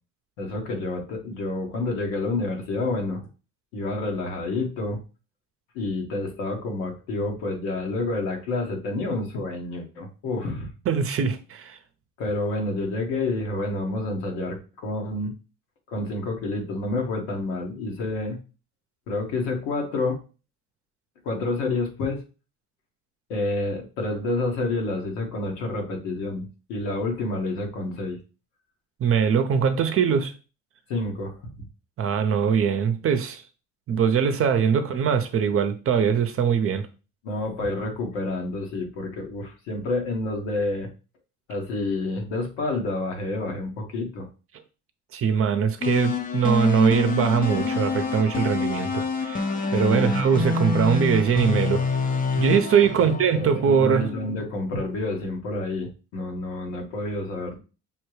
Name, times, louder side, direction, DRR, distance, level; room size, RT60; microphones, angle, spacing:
voice 1, 0.4-3.2 3.7-5.0 5.7-10.7 12.2-15.3 15.9-18.4 19.1-20.2 21.2-22.2 23.3-28.2 30.9-31.7 37.2-40.9 41.5-44.3 49.8-50.2 53.3-57.6, left 2 dB, 80° left, 1.3 m, -29 dB
voice 2, 10.9-11.8 29.0-30.3 32.0-33.4 33.9-36.8 45.1-49.4 49.7-52.0 52.4-54.1, right 7 dB, 45° right, 0.7 m, -22 dB
sound 1, 45.8-54.0, left 4 dB, 25° left, 0.6 m, -26 dB
5.5 x 2.2 x 3.1 m
supercardioid pair, 80°, 32 cm